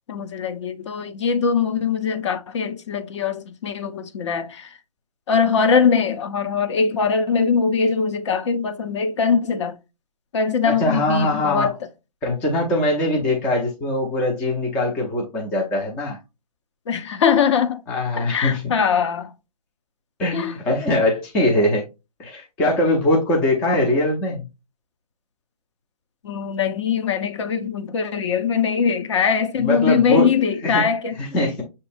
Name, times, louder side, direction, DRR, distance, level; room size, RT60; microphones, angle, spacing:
voice 1, 0.1-4.8 5.3-9.8 10.3-11.8 16.9-17.8 18.2-19.3 20.3-20.5 26.2-31.2, left 6 dB, 45° left, 0.7 m, -21 dB
voice 2, 10.6-11.7 12.2-16.2 17.9-18.7 20.2-21.8 22.2-24.5 29.6-30.3 30.6-30.9 31.2-31.6, left 1 dB, 5° left, 0.3 m, -22 dB
6.2 x 2.6 x 2.5 m
figure-of-eight pair, 140°, 20 cm